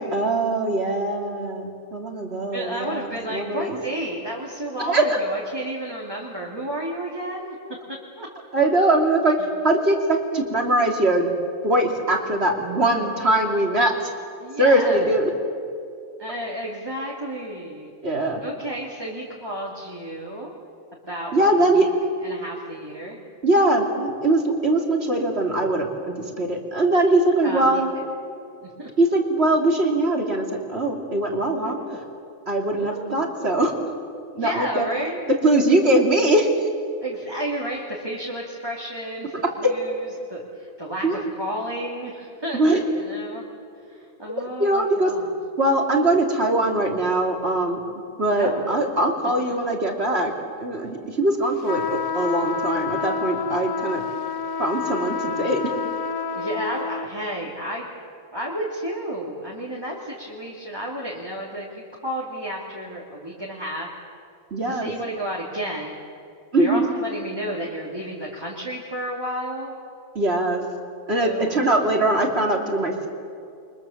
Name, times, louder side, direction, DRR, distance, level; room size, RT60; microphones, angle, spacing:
voice 1, 0.0-3.8 4.9-5.2 8.5-9.4 9.6-11.3 11.6-13.9 14.6-15.3 18.0-18.4 21.3-21.9 23.4-27.9 29.0-31.8 32.5-33.7 34.3-34.9 35.4-36.7 41.0-41.2 42.5-42.8 44.6-45.1 45.6-47.8 48.2-50.3 50.6-54.0 54.6-55.6 64.5-64.9 66.5-66.9 70.1-70.6 71.1-73.1, right 1 dB, 45° right, 2 dB, 3.4 m, -21 dB
voice 2, 2.5-7.6 8.2-8.3 14.4-15.1 16.2-17.9 18.4-20.5 21.1-21.9 22.2-23.2 27.4-28.0 28.6-28.9 31.6-32.0 32.7-33.3 34.4-35.3 37.0-43.4 43.9-45.3 48.4-48.7 49.5-49.6 56.3-57.9 58.3-63.9 64.6-65.9 66.6-69.7 71.2-71.7, right 1 dB, 15° right, -4 dB, 3.0 m, -32 dB
sound 1, 51.6-57.1, left 5 dB, 80° left, 1.3 m, -28 dB
30.0 x 24.0 x 7.4 m, 2.5 s
omnidirectional pair, 1.5 m